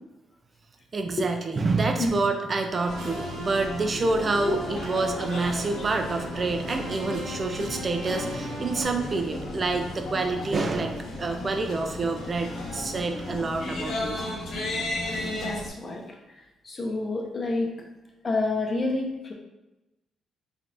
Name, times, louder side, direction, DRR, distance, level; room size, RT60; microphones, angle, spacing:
voice 1, 0.9-14.2, right 3 dB, 35° right, 5 dB, 0.5 m, -27 dB
sound 1, 2.7-8.8, equal, 75° right, 1.1 m, -37 dB
sound 2, 2.9-15.7, left 1 dB, 65° left, 1.0 m, -35 dB
voice 2, 15.2-16.2 16.6-17.7 18.2-19.3, left 2 dB, 35° left, 1 dB, 0.8 m, -28 dB
4.3 x 3.3 x 2.6 m, 0.98 s
cardioid pair, 90°, 0 cm